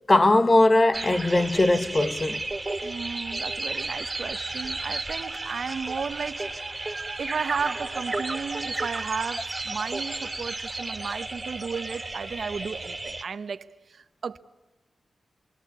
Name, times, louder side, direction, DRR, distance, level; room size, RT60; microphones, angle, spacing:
voice 1, 0.1-2.4, left 2 dB, 30° left, 1.1 m, -20 dB
sound 1, 0.9-13.2, right 2 dB, 20° right, 3.0 m, -33 dB
voice 2, 2.8-6.5 7.2-14.4, right 5 dB, 70° right, 1.0 m, -34 dB
29.5 x 23.0 x 8.3 m
wide cardioid pair, 95°, 0 cm